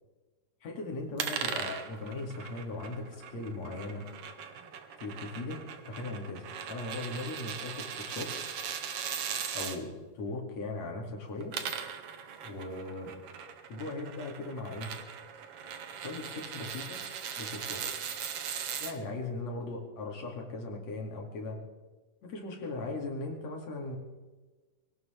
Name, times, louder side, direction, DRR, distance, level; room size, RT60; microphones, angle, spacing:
voice 1, 0.6-4.1 5.0-8.3 9.5-11.5 12.4-13.2 13.7-14.9 16.0-17.0 17.4-17.8 18.8-21.6 22.2-24.0, left 2 dB, 55° left, 1 dB, 3.5 m, -38 dB
sound 1, 1.2-9.8 11.3-18.9, right 7 dB, 60° right, 1.7 m, -39 dB
22.5 x 18.0 x 3.5 m, 1.2 s
omnidirectional pair, 3.7 m